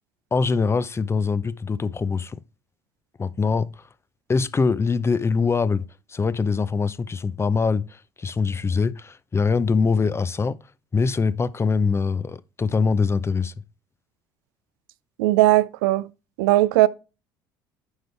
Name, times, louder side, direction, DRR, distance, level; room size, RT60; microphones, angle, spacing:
voice 1, 0.3-2.4 3.2-3.9 4.3-10.6 10.9-13.5, left 4 dB, 25° left, 0.6 m, -23 dB
voice 2, 15.2-16.1 16.4-16.9, right 16 dB, 80° right, 0.5 m, -18 dB
9.7 x 5.3 x 3.4 m
hypercardioid pair, 65°, 11 cm